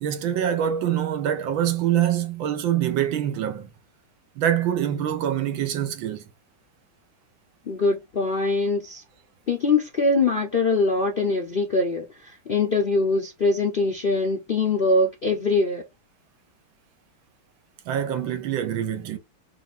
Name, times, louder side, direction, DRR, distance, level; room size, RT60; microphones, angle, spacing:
voice 1, 0.0-3.7 4.4-6.3 17.9-19.2, right 10 dB, 75° right, 1.5 m, -25 dB
voice 2, 7.7-9.0 9.5-15.8, left 3 dB, 75° left, 0.5 m, -23 dB
4.3 x 2.5 x 3.7 m
omnidirectional pair, 2.2 m